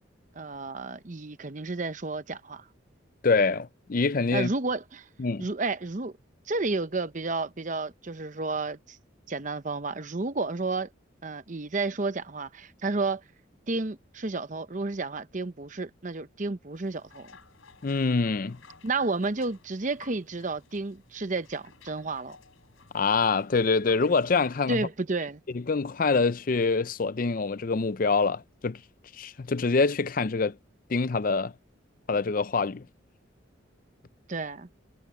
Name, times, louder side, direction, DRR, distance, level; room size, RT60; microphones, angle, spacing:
voice 1, 0.3-2.7 4.3-5.1 5.4-6.1 6.5-9.0 9.3-10.9 11.2-13.2 13.7-17.3 18.8-22.4 24.7-25.4 34.3-34.7, right 3 dB, 40° right, 0.8 m, -31 dB
voice 2, 3.2-4.5 5.2-5.5 17.8-18.6 22.9-24.8 25.5-28.8 29.2-30.5 30.9-31.5 32.1-32.8, left 4 dB, 45° left, 0.5 m, -25 dB
sound 1, 16.7-24.7, left 4 dB, 85° left, 4.8 m, -55 dB
head